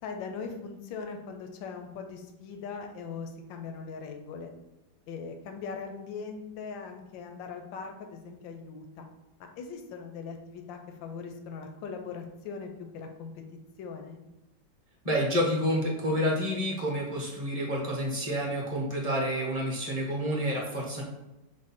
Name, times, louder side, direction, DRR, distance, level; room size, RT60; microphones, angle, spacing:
voice 1, 0.0-4.5 5.1-9.1 9.6-13.4 13.8-14.2, left 5 dB, 90° left, 5 dB, 1.3 m, -40 dB
voice 2, 15.0-21.0, equal, 30° right, -2 dB, 0.7 m, -29 dB
6.1 x 2.1 x 4.1 m, 0.99 s
omnidirectional pair, 2.0 m